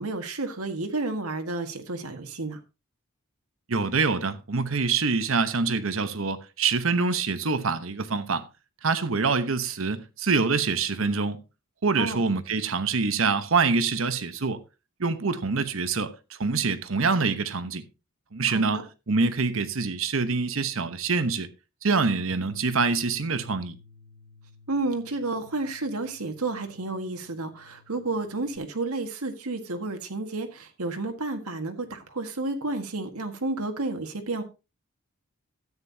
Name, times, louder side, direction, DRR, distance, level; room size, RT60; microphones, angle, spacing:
voice 1, 0.0-2.6 12.0-12.2 18.5-18.8 24.7-34.4, right 2 dB, 85° right, 1.7 m, -31 dB
voice 2, 3.7-8.4 8.8-11.4 11.8-14.6 15.0-17.8 18.3-21.5 21.8-23.8, right 4 dB, 65° right, 1.0 m, -25 dB
Bass guitar, 22.3-28.6, left 3 dB, 5° left, 1.5 m, -54 dB
13.5 x 9.1 x 2.8 m
head